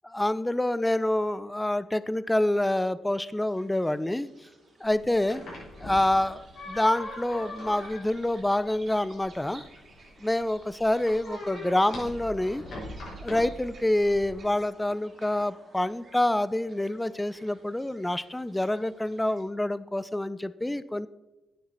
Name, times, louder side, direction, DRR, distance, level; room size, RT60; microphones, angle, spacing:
voice 1, 0.0-4.3 4.8-5.5 5.8-9.6 10.2-12.6 13.2-21.1, left 1 dB, 10° left, 16 dB, 0.6 m, -27 dB
sound 1, 3.4-19.4, right 3 dB, 50° right, 2.8 m, -55 dB
sound 2, 4.8-14.4, left 1 dB, 60° left, 3.6 m, -42 dB
9.4 x 7.9 x 4.0 m, 1.0 s
hypercardioid pair, 45°, 0 cm